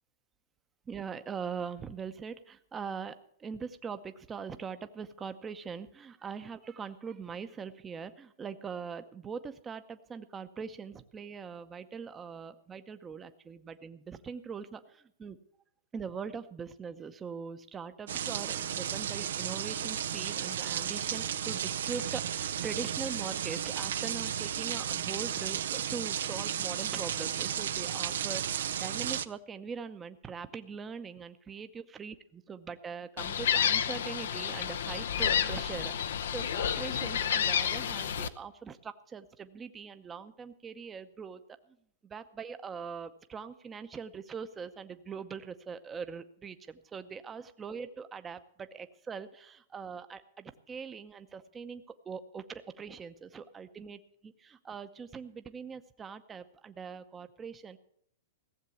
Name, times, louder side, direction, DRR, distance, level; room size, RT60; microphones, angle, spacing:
voice 1, 0.9-15.4 15.9-32.1 32.5-41.4 42.0-54.0 54.4-57.8, right 6 dB, 15° right, 10 dB, 0.7 m, -42 dB
sound 1, 18.1-29.3, right 9 dB, 80° right, 0.6 m, -34 dB
Gull seagull, 33.2-38.3, left 8 dB, 80° left, 0.7 m, -30 dB
16.5 x 7.5 x 7.0 m, 0.66 s
hypercardioid pair, 140°, 0 cm